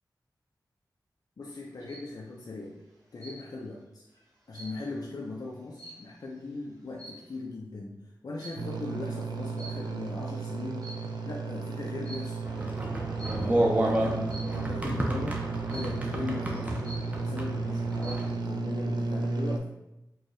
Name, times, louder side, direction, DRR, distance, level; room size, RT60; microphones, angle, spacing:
voice 1, 1.4-2.7 3.1-4.1 4.5-7.9 8.2-10.8 11.2-12.4 13.2-15.4 15.7-16.8 17.2-19.7, left 2 dB, 65° left, -3 dB, 0.5 m, -39 dB
sound 1, 1.5-2.1 3.2-3.7 4.1-6.4 6.9-7.4 8.4-8.8 9.6-10.2 10.7-11.3 12.0-12.4 13.2-13.6 14.3-14.7 15.7-16.2 16.6-16.7 16.8-17.4 17.8-18.3, right 1 dB, 45° right, 1.3 m, -47 dB
sound 2, 8.6-19.6, right 4 dB, 75° right, 0.4 m, -34 dB
sound 3, 12.4-18.3, right 1 dB, 20° right, 0.6 m, -31 dB
4.5 x 2.3 x 3.1 m, 0.90 s
wide cardioid pair, 85°, 7 cm